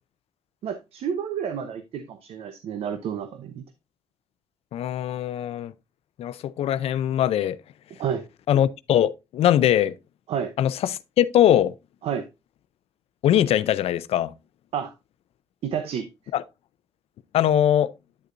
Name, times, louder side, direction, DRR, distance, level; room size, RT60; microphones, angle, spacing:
voice 1, 0.6-3.6 8.0-8.2 10.3-10.5 12.0-12.3 14.7-14.9 15.6-16.1, right 8 dB, 80° right, 0.8 m, -30 dB
voice 2, 4.7-5.7 6.2-7.6 8.5-10.0 10.6-11.7 13.2-14.3 16.3-16.4 17.3-17.9, left 11 dB, 80° left, 0.5 m, -21 dB
9.6 x 6.6 x 2.5 m
cardioid pair, 80°, 10 cm